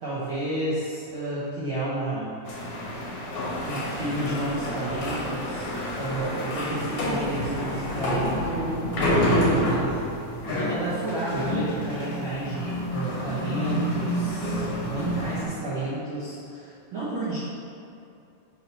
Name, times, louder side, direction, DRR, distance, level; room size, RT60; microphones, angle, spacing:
voice 1, 0.0-2.4 3.6-5.7 6.0-10.0 10.4-17.4, right 1 dB, 70° right, -11 dB, 1.2 m, -31 dB
sound 1, 2.5-15.4, equal, 60° left, 1.5 m, -28 dB
7.6 x 2.8 x 5.4 m, 2.7 s
omnidirectional pair, 3.8 m